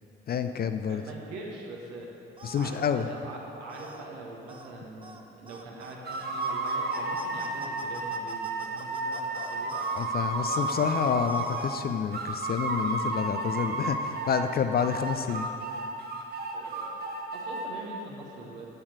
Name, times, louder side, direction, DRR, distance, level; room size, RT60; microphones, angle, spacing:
voice 1, 0.3-1.0 2.4-3.1 9.9-15.5, left 7 dB, 30° left, 8 dB, 0.5 m, -29 dB
voice 2, 0.9-2.1 2.5-9.7 16.5-18.7, right 2 dB, 60° right, -1 dB, 1.5 m, -43 dB
sound 1, 2.4-2.9 3.7-4.1 4.5-4.7 5.0-5.2 5.5-10.1 10.5-12.0, right 3 dB, 15° right, 0.7 m, -45 dB
sound 2, 6.0-11.7 12.1-14.5 14.8-17.7, right 2 dB, 30° right, 1.3 m, -32 dB
8.0 x 7.2 x 6.4 m, 2.8 s
figure-of-eight pair, 45°, 30 cm